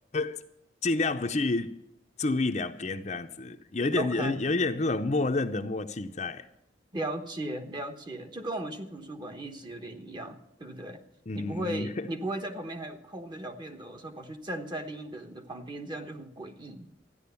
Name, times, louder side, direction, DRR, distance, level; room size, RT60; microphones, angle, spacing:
voice 1, 0.8-1.7 2.2-6.5 11.3-12.1, left 3 dB, 40° left, 0.6 m, -29 dB
voice 2, 4.0-4.4 6.9-11.0 11.3-16.9, right 1 dB, 25° right, 1.1 m, -37 dB
13.5 x 10.0 x 6.9 m
head